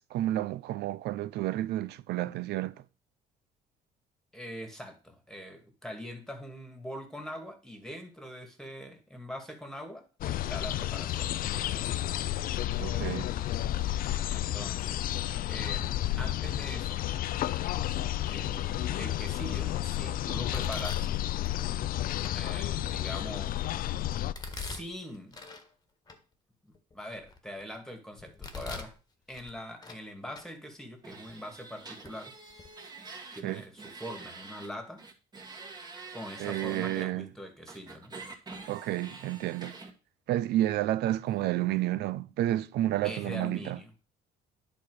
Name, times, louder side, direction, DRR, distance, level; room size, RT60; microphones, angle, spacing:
voice 1, 0.1-2.7 12.8-13.3 33.4-33.6 36.4-37.3 38.7-39.7 40.3-43.8, right 14 dB, 75° right, 0.6 m, -30 dB
voice 2, 4.3-12.0 14.3-15.1 15.5-17.0 18.3-21.1 22.3-23.6 24.5-25.4 26.6-28.9 29.3-32.3 33.3-35.0 36.1-38.1 43.0-43.9, equal, 5° left, 2.3 m, -43 dB
sound 1, 10.2-24.3, left 13 dB, 60° left, 0.5 m, -31 dB
Domestic sounds home sounds, 18.4-18.8 19.3-19.8 20.5-21.7 22.2-22.3 22.9-23.7 24.3-25.7 26.1-26.2 26.7-27.7 28.2-29.0 29.3-30.0 30.3-30.5 31.3-31.4 32.0-32.1 32.5-32.7, left 4 dB, 25° left, 1.6 m, -43 dB
sound 2, 31.0-34.7 35.0-37.0 37.7-39.9, right 4 dB, 25° right, 2.3 m, -46 dB
10.5 x 4.3 x 6.3 m
cardioid pair, 110°, 17 cm